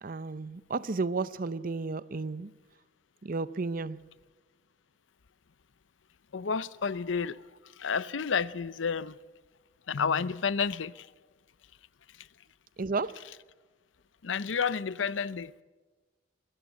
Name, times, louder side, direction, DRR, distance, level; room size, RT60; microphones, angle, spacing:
voice 1, 0.0-2.5 3.2-4.0 12.8-13.1, right 3 dB, 50° right, 0.7 m, -32 dB
voice 2, 6.3-7.4 7.8-9.2 9.9-11.1 14.2-15.5, left 6 dB, 90° left, 0.6 m, -30 dB
23.5 x 15.5 x 8.9 m
head